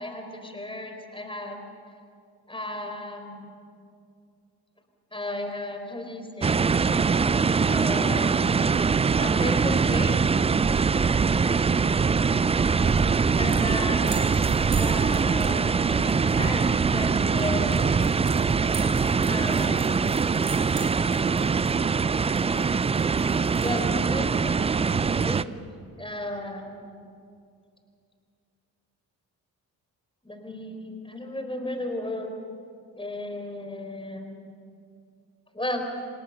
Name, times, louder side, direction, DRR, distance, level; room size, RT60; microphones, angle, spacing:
voice 1, 0.0-1.6 2.5-3.5 5.1-6.6 7.7-8.7 9.2-10.2 13.3-14.2 14.7-17.9 19.2-20.3 23.6-25.5 26.0-26.9 30.2-32.3 33.0-34.4 35.5-35.9, left 1 dB, 10° left, 4 dB, 4.5 m, -34 dB
sound 1, 6.4-25.4, right 5 dB, 15° right, 0.4 m, -23 dB
sound 2, 12.9-24.0, right 3 dB, 85° right, 3.2 m, -43 dB
26.0 x 13.5 x 9.6 m, 2.3 s
figure-of-eight pair, 40°, 47 cm